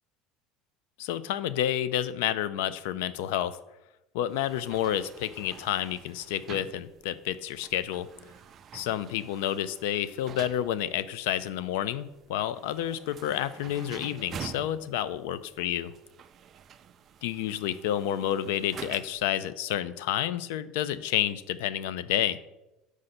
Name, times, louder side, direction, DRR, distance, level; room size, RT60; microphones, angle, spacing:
voice 1, 1.0-3.6 4.1-8.1 8.7-15.9 17.2-22.4, left 11 dB, 85° left, 15 dB, 0.4 m, -30 dB
sound 1, 4.3-19.3, right 7 dB, 35° right, 0.4 m, -47 dB
6.5 x 4.8 x 4.2 m, 0.93 s
cardioid pair, 145°, 0 cm